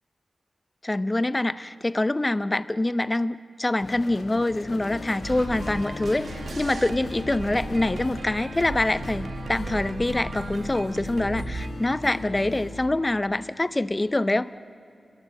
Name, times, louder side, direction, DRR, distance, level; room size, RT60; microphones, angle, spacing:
voice 1, 0.8-6.3 6.6-14.5, left 2 dB, 20° left, 14 dB, 0.6 m, -25 dB
sound 1, 3.8-8.2, left 4 dB, 80° left, 1.7 m, -42 dB
sound 2, 4.7-12.8, left 3 dB, 60° left, 5.3 m, -38 dB
sound 3, 5.2-11.7, right 4 dB, 75° right, 1.1 m, -37 dB
29.5 x 22.5 x 6.4 m, 2.6 s
wide cardioid pair, 100°, 0 cm